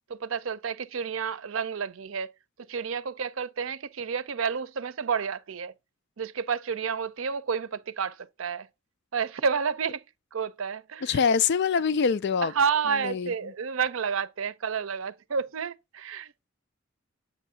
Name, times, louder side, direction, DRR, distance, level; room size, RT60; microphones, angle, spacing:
voice 1, 0.1-2.3 2.7-5.7 6.2-8.7 9.1-10.0 10.3-11.2 12.4-16.5, right 6 dB, 85° right, 0.6 m, -30 dB
voice 2, 11.0-12.5 13.0-13.3, left 6 dB, 60° left, 0.4 m, -24 dB
8.1 x 2.7 x 5.6 m
head